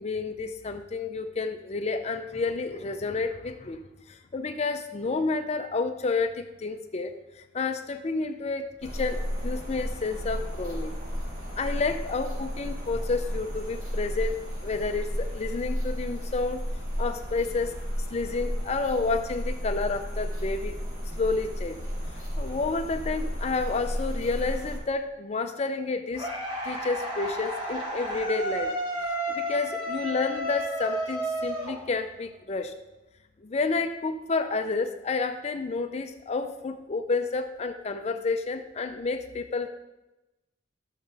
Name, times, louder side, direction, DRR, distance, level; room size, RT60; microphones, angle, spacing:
voice 1, 0.0-3.8 4.1-11.0 11.6-14.4 14.6-16.6 17.0-17.8 18.1-20.8 21.2-21.8 22.4-26.3 26.6-28.8 29.3-32.7 33.4-39.7, left 3 dB, 35° left, 7 dB, 0.4 m, -30 dB
sound 1, 8.8-24.8, equal, 40° right, 3.6 m, -33 dB
sound 2, 26.2-32.3, equal, 25° right, 1.7 m, -32 dB
12.5 x 6.6 x 3.3 m, 1.0 s
head